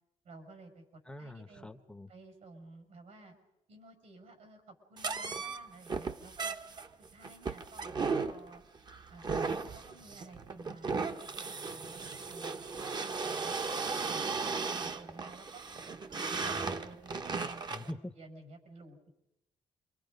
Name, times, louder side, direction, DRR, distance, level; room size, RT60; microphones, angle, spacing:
voice 1, 0.2-0.8 1.2-1.7 2.1-3.4 3.7-6.6 7.1-8.6 9.1-13.7 14.0-15.6 16.1-19.1, right 2 dB, 75° right, 6 dB, 6.2 m, -53 dB
voice 2, 1.1-2.1 17.7-18.1, left 1 dB, 5° left, 9 dB, 0.8 m, -44 dB
sound 1, 5.0-17.9, right 4 dB, 35° right, 1.0 m, -36 dB
28.0 x 24.5 x 5.3 m, 0.87 s
cardioid pair, 135°, 12 cm